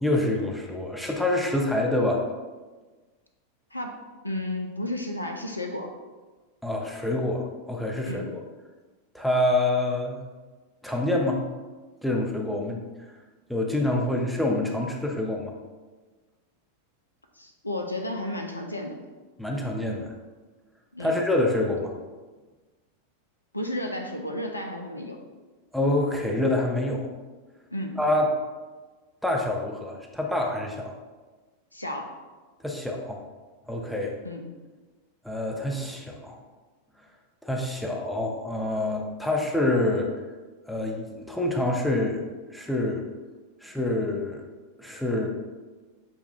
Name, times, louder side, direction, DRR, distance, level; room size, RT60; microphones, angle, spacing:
voice 1, 0.0-2.2 6.6-8.2 9.1-10.2 10.8-11.4 12.0-12.8 13.5-15.5 19.4-20.1 21.0-21.9 25.7-27.1 28.0-28.4 29.2-30.9 32.6-33.2 33.7-34.2 35.2-36.4 37.4-40.1 40.7-42.2 42.5-43.1 43.6-44.4 44.8-45.3, left 1 dB, ahead, 0 dB, 0.6 m, -26 dB
voice 2, 4.2-5.9 8.1-8.3 17.4-19.0 20.9-21.2 23.5-25.2 27.7-28.0 31.7-32.1 34.2-34.5, left 1 dB, 85° left, 3 dB, 0.3 m, -32 dB
6.7 x 2.3 x 2.4 m, 1.3 s
figure-of-eight pair, 90°, 0 cm